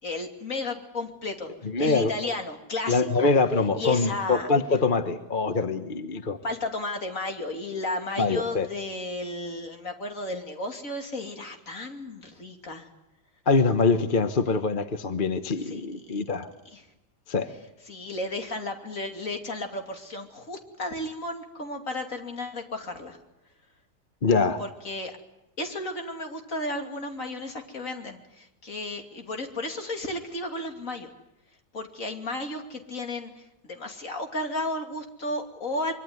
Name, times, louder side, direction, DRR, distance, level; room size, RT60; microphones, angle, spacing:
voice 1, 0.0-3.3 3.8-4.5 6.4-12.9 15.6-16.2 16.6-16.8 17.8-23.2 24.6-25.2 25.6-31.1 31.7-35.9, left 2 dB, 55° left, 4 dB, 3.2 m, -33 dB
voice 2, 1.7-2.1 2.9-6.4 8.2-8.7 13.5-16.5 17.3-17.5 24.2-24.6, left 4 dB, 35° left, 9 dB, 1.1 m, -24 dB
25.0 x 23.5 x 9.6 m, 0.88 s
omnidirectional pair, 1.7 m